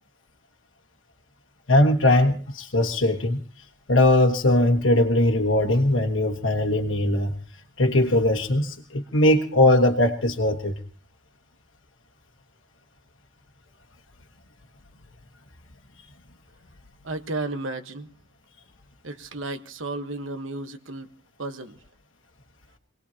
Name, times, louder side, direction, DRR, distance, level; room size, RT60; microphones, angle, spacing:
voice 1, 1.7-3.4 3.9-7.3 7.8-10.8, left 1 dB, 85° left, 3 dB, 1.4 m, -20 dB
voice 2, 17.0-18.1 19.0-21.1 21.4-21.8, right 2 dB, 85° right, 9 dB, 1.2 m, -33 dB
26.5 x 19.0 x 2.9 m, 0.39 s
head